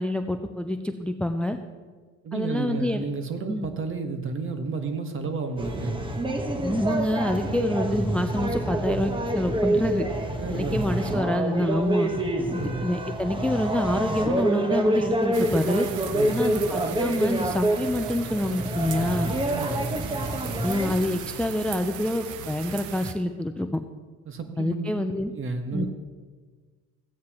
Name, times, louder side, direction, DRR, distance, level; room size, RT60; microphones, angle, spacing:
voice 1, 0.0-1.6 2.3-3.0 3.5-3.7 6.6-10.1 10.5-12.1 12.5-15.9 16.3-19.3 20.6-23.8 24.6-25.3 25.7-25.9, left 1 dB, 5° left, 8 dB, 0.4 m, -27 dB
voice 2, 2.2-6.0 10.4-11.0 12.5-12.9 16.1-16.5 19.5-19.9 24.3-24.9 25.3-25.9, right 4 dB, 40° right, 6 dB, 1.3 m, -31 dB
sound 1, 5.6-21.0, right 1 dB, 15° right, 1.2 m, -27 dB
sound 2, 15.3-23.1, right 8 dB, 70° right, 0.9 m, -37 dB
15.0 x 9.4 x 3.0 m, 1.5 s
cardioid pair, 100°, 32 cm